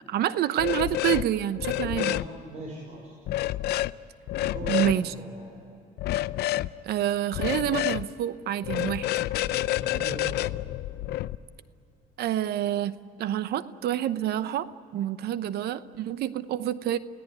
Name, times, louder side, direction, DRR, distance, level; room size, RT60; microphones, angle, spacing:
voice 1, 0.1-2.1 4.7-5.1 6.8-9.1 12.2-14.7 14.9-17.0, right 11 dB, 70° right, 14 dB, 0.9 m, -28 dB
sound 1, 0.6-1.3 1.6-2.3 3.3-3.9 4.3-5.0 6.0-6.7 7.3-8.0 8.6-11.3, left 15 dB, 75° left, 0.6 m, -28 dB
voice 2, 1.8-3.1 4.4-5.6 9.4-10.4, right 2 dB, 40° right, -1 dB, 5.4 m, -40 dB
29.5 x 17.0 x 9.5 m, 2.7 s
cardioid pair, 110°, 17 cm